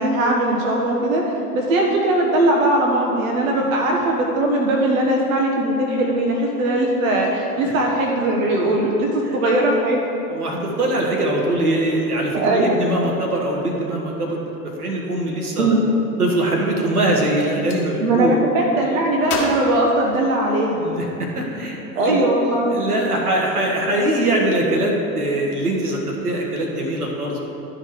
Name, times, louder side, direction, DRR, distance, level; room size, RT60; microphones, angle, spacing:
voice 1, 0.0-10.0 12.3-12.8 15.6-15.8 18.0-20.8 21.9-22.9, right 1 dB, 65° right, -1 dB, 1.1 m, -20 dB
voice 2, 10.3-14.4 14.8-15.7 16.2-18.4 20.7-21.0 21.3-22.2 22.7-27.4, right 1 dB, 80° right, -1 dB, 1.4 m, -22 dB
Gunshot gunfire, 17.3-17.8 19.2-20.7, left 3 dB, 70° left, 1.4 m, -30 dB
12.0 x 5.0 x 4.6 m, 3.0 s
figure-of-eight pair, 75°, 45 cm